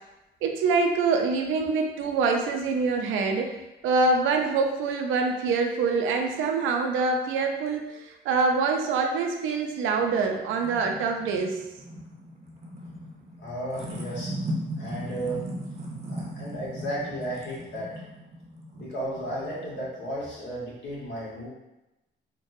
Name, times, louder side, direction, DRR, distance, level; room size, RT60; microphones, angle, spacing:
voice 1, 0.4-3.6 3.8-11.6, right 4 dB, 90° right, 3 dB, 0.5 m, -25 dB
sound 1, 10.0-20.1, equal, 35° right, 0.6 m, -38 dB
voice 2, 13.4-14.3 14.8-15.4 16.1-17.9 18.7-21.5, right 1 dB, 65° left, -5 dB, 1.3 m, -34 dB
3.9 x 2.2 x 2.6 m, 0.98 s
cardioid pair, 90°, 20 cm